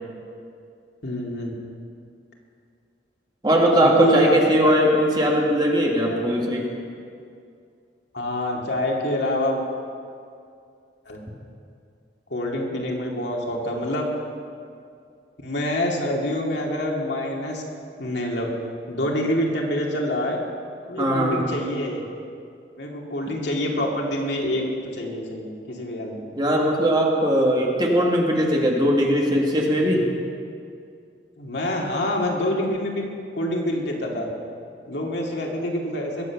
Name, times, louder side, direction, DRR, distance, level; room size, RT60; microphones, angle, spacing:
voice 1, 1.0-1.5 3.8-4.4 4.6-4.7 8.1-9.6 11.1-11.2 12.3-14.0 15.4-17.6 18.0-18.5 18.9-20.4 20.9-22.0 22.8-24.6 24.9-26.2 31.4-33.0 33.3-34.3 34.9-36.2, left 1 dB, 75° left, -1 dB, 2.4 m, -26 dB
voice 2, 3.4-6.7 21.0-21.4 26.3-30.1, equal, 25° right, -1 dB, 2.0 m, -19 dB
21.5 x 8.2 x 6.0 m, 2.4 s
head